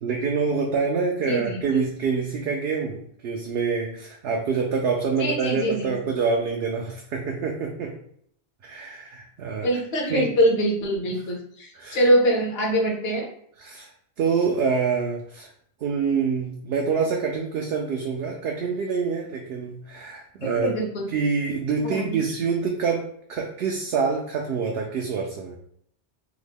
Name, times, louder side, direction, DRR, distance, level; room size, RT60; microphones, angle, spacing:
voice 1, 0.0-7.9 8.6-9.7 10.1-10.3 11.7-12.1 13.6-13.9 14.2-15.5 15.8-20.7 21.1-25.6, right 5 dB, 70° right, 0 dB, 0.8 m, -26 dB
voice 2, 1.3-1.6 5.2-5.9 9.6-13.3 20.4-21.1 21.8-22.0, equal, 65° left, 1 dB, 1.1 m, -23 dB
3.7 x 2.1 x 3.4 m, 0.66 s
omnidirectional pair, 1.1 m